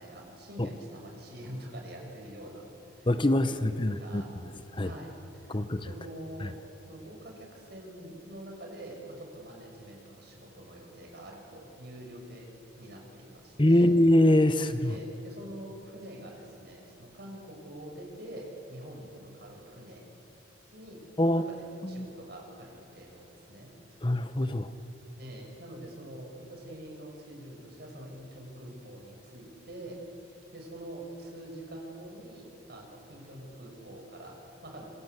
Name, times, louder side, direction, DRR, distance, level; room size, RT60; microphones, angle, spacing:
voice 1, 0.0-4.3 4.8-6.6 6.9-13.9 14.5-20.1 20.7-23.7 25.2-30.0 30.2-34.9, right 1 dB, 55° right, 1 dB, 6.4 m, -45 dB
voice 2, 3.1-4.2 4.7-4.9 5.5-5.9 6.4-6.5 13.6-15.0 21.2-21.4 21.8-22.1 24.0-24.7, left 1 dB, 25° left, 10 dB, 0.9 m, -24 dB
27.5 x 25.0 x 8.1 m, 2.8 s
head